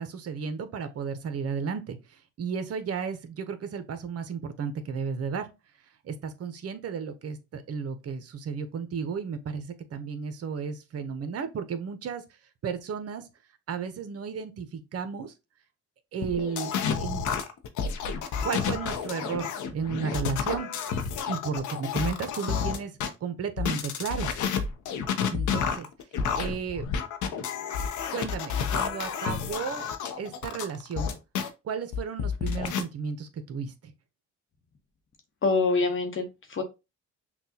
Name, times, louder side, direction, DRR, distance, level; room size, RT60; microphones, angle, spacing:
voice 1, 0.0-2.0 2.4-5.5 6.0-12.2 12.6-13.3 13.7-15.3 16.1-17.2 18.4-20.7 21.3-22.9 23.2-24.3 25.3-25.9 26.4-26.9 28.1-29.9 30.2-31.2 31.6-33.9, right 6 dB, 50° right, 0.8 m, -33 dB
sound 1, 16.2-23.1 23.6-31.5 31.9-32.8, left 7 dB, 75° left, 0.7 m, -30 dB
voice 2, 35.4-36.6, left 3 dB, 40° left, 0.9 m, -25 dB
5.9 x 2.3 x 2.7 m
cardioid pair, 90°, 30 cm